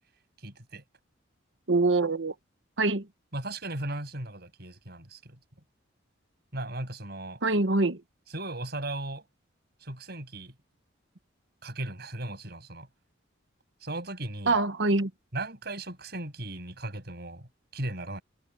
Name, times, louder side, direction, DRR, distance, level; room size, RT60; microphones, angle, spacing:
voice 1, 0.4-0.8 3.3-5.4 6.5-7.4 8.3-9.3 9.8-10.5 11.6-12.9 13.8-14.5 15.3-18.2, right 1 dB, 55° right, 7.2 m, -37 dB
voice 2, 1.7-2.3 2.8-3.1 7.4-8.0 14.5-15.1, right 3 dB, 70° right, 1.2 m, -24 dB
head